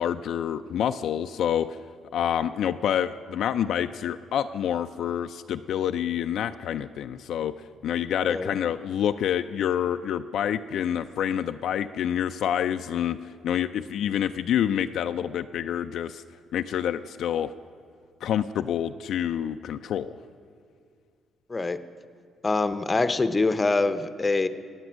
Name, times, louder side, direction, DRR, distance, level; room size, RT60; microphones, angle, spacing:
voice 1, 0.0-1.8 2.1-7.5 7.8-13.2 13.4-16.2 16.5-17.5 18.2-20.2, left 9 dB, 75° left, 9 dB, 0.3 m, -27 dB
voice 2, 22.4-24.5, left 3 dB, 25° left, 12 dB, 0.6 m, -24 dB
15.5 x 9.4 x 6.2 m, 2.2 s
cardioid pair, 90°, 0 cm